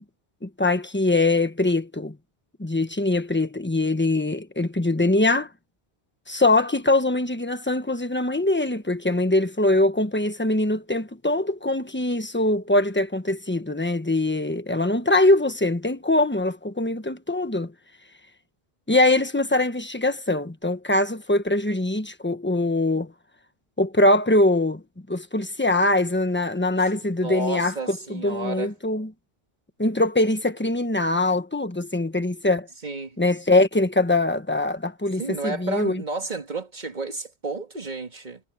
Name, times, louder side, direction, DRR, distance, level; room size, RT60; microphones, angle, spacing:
voice 1, 0.4-2.2 2.6-5.5 6.3-17.7 18.9-23.1 23.8-24.8 25.1-29.1 29.8-32.7 33.2-36.0, left 2 dB, 10° left, 1.2 m, -22 dB
voice 2, 27.2-28.7 32.8-33.2 35.2-38.4, right 2 dB, 45° right, 2.1 m, -31 dB
omnidirectional pair, 1.0 m